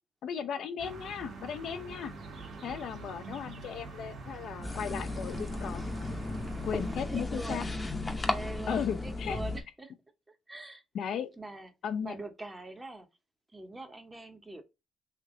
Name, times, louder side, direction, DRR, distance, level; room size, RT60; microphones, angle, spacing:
voice 1, 0.2-2.1 2.6-5.8 6.6-7.6 8.7-9.4 10.9-11.3 11.8-12.1, left 7 dB, 70° left, 0.5 m, -36 dB
sound 1, 0.8-7.1, right 3 dB, 65° right, 1.4 m, -45 dB
sound 2, 4.6-9.6, left 2 dB, 20° left, 0.7 m, -35 dB
voice 2, 7.1-7.7 8.2-9.9 10.3-11.7 12.0-13.1 13.5-14.6, right 2 dB, 20° right, 0.8 m, -44 dB
3.3 x 2.8 x 3.5 m
cardioid pair, 90°, 0 cm